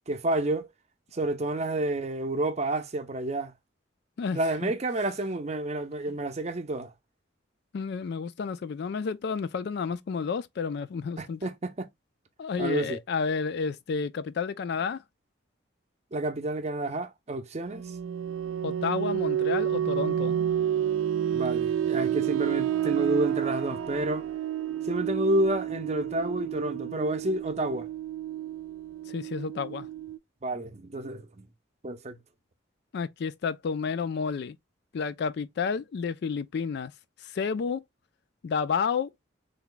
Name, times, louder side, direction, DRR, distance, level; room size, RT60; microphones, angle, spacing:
voice 1, 0.1-0.7 1.1-3.5 4.3-6.9 11.2-11.9 12.6-13.0 16.1-17.9 21.3-24.3 24.8-27.9 30.4-31.5 31.8-32.2, right 1 dB, 35° right, 0.6 m, -29 dB
voice 2, 4.2-4.7 7.7-11.4 12.4-15.0 18.6-20.4 29.1-29.9 32.9-34.6 34.9-36.9 37.2-37.8 38.4-39.1, left 5 dB, 55° left, 0.3 m, -31 dB
sound 1, 17.6-30.2, right 10 dB, 85° right, 0.4 m, -30 dB
3.4 x 2.2 x 3.7 m
head